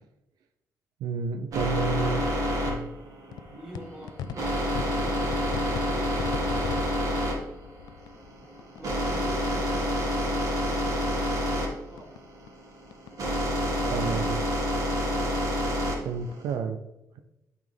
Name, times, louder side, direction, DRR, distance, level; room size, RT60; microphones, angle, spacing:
voice 1, 1.0-2.2 2.7-2.9 3.5-3.6 13.9-14.4 15.9-16.8, right 5 dB, 90° right, 8 dB, 0.5 m, -30 dB
sound 1, 1.5-16.5, equal, 55° right, 2.0 m, -28 dB
voice 2, 1.9-2.2 3.5-4.7 5.0-5.3 5.7-7.0 8.8-12.1 13.5-14.3 14.7-15.3, equal, 15° right, -5 dB, 2.6 m, -45 dB
sound 2, 3.3-10.6 10.8-13.2 13.4-16.4, left 7 dB, 90° left, 0.4 m, -42 dB
9.1 x 4.1 x 3.5 m, 0.94 s
cardioid pair, 110°, 7 cm